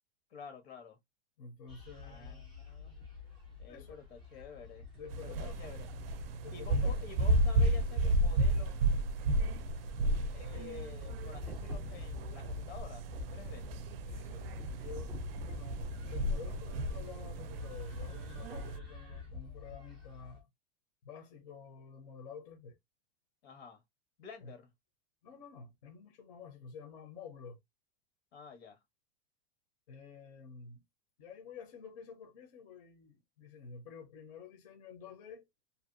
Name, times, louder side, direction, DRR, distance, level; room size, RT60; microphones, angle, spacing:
voice 1, 0.3-1.0 2.1-2.9 3.6-4.9 5.2-5.9 6.5-8.8 10.3-13.7 23.4-23.8 24.2-24.7 28.3-28.8, left 6 dB, 85° left, 1.2 m, -50 dB
voice 2, 1.4-2.5 3.7-4.0 5.0-5.6 6.4-7.0 10.5-10.7 14.1-15.2 15.4-20.5 21.0-22.8 24.4-24.5 25.2-27.6 29.9-30.8 31.2-35.5, left 6 dB, 40° left, 0.6 m, -50 dB
sound 1, 1.7-20.4, left 3 dB, ahead, 0.4 m, -47 dB
sound 2, 5.1-18.8, right 1 dB, 65° right, 0.4 m, -33 dB
2.6 x 2.3 x 2.4 m
supercardioid pair, 180°, 31 cm